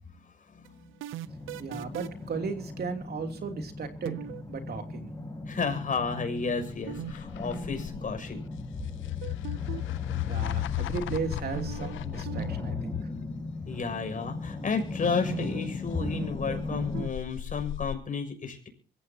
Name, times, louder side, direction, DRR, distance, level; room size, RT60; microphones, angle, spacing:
voice 1, 0.5-0.9 5.5-8.4 13.7-18.7, left 5 dB, 40° left, 5 dB, 6.6 m, -32 dB
sound 1, 0.6-2.3 4.0-4.5 6.9-7.1 7.4-7.5 9.2-10.0 11.5-12.0 12.3-12.5 12.8-12.9 15.3-15.7 16.0-17.1, right 12 dB, 85° right, 0.8 m, -38 dB
sound 2, 1.2-17.1, left 2 dB, 15° left, 5.6 m, -38 dB
voice 2, 1.6-4.2 4.5-5.1 10.3-13.0, right 5 dB, 55° right, 6 dB, 3.0 m, -35 dB
sound 3, 6.5-13.2 15.9-17.9, left 14 dB, 80° left, 0.6 m, -35 dB
24.0 x 15.5 x 2.9 m, 0.39 s
cardioid pair, 90°, 20 cm